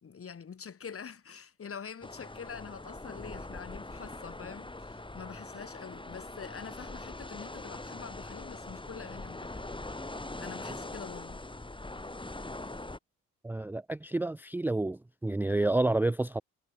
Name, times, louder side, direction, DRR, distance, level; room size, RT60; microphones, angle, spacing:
voice 1, 0.0-9.8 10.4-11.4, left 6 dB, 40° left, 2.3 m, -45 dB
sound 1, 2.0-13.0, left 2 dB, 15° left, 5.9 m, -42 dB
voice 2, 13.4-16.4, right 2 dB, 5° right, 0.5 m, -29 dB
supercardioid pair, 65°, 34 cm